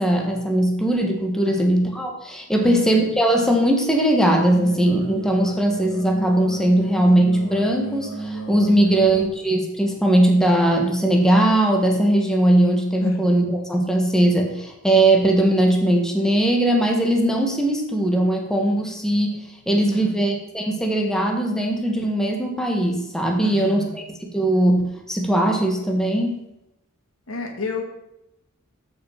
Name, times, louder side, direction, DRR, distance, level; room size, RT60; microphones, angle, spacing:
voice 1, 0.0-19.4 19.7-26.4, right 1 dB, 5° left, 1 dB, 1.4 m, -19 dB
voice 2, 2.6-2.9 8.8-9.1 13.0-13.3 19.9-20.2 23.4-24.0 27.3-27.8, left 3 dB, 75° left, 4 dB, 1.9 m, -31 dB
sound 1, 4.3-9.3, right 2 dB, 55° left, 2.8 m, -34 dB
13.5 x 5.8 x 5.7 m, 0.87 s
head